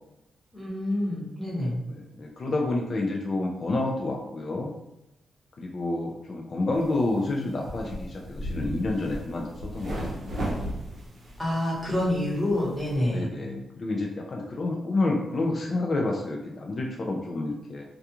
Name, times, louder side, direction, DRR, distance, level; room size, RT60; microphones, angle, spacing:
voice 1, 0.5-1.8 11.4-13.3, left 1 dB, 5° left, -7 dB, 1.0 m, -27 dB
voice 2, 1.9-4.8 5.6-9.5 9.7-10.5 13.0-17.8, left 2 dB, 40° left, -1 dB, 0.3 m, -29 dB
sound 1, 6.7-12.9, right 1 dB, 55° right, 0.7 m, -37 dB
2.3 x 2.3 x 2.8 m, 0.88 s
wide cardioid pair, 135°, 0 cm